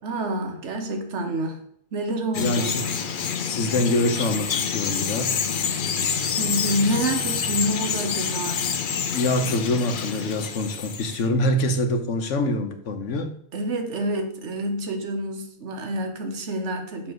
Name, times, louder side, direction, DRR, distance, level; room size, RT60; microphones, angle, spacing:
voice 1, 0.0-1.6 1.9-2.8 6.4-8.7 13.5-17.1, right 1 dB, 75° right, 1.3 m, -28 dB
Bird vocalization bird call bird song, 2.3-11.2, left 6 dB, 55° left, 0.7 m, -27 dB
voice 2, 2.4-3.0 3.4-5.4 9.1-13.4, left 1 dB, 85° left, 1.3 m, -25 dB
7.4 x 3.3 x 6.2 m
omnidirectional pair, 1.2 m